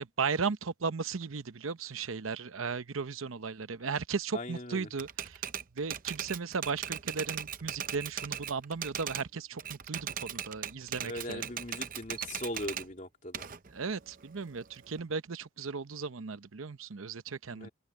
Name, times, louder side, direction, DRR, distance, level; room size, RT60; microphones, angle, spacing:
voice 1, 0.0-5.4 5.8-11.5 13.7-17.7, right 5 dB, 85° right, 0.8 m, -36 dB
voice 2, 4.3-4.9 11.0-13.4 17.5-17.7, left 1 dB, 40° left, 3.3 m, -39 dB
Typewriter, 5.0-9.3 9.6-12.9 13.3-15.0, right 9 dB, 40° right, 0.7 m, -38 dB
open air
head